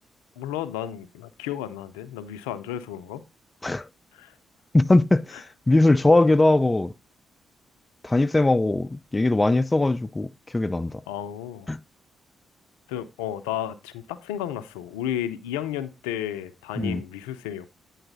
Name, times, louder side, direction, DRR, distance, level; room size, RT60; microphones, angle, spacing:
voice 1, 0.4-3.2 4.1-4.3 11.1-11.7 12.9-17.7, left 11 dB, 90° left, 0.5 m, -33 dB
voice 2, 4.7-6.9 8.0-10.3 10.5-11.0 11.7-11.8 16.8-17.0, left 2 dB, 20° left, 0.4 m, -20 dB
9.0 x 4.0 x 4.0 m
hypercardioid pair, 45°, 0 cm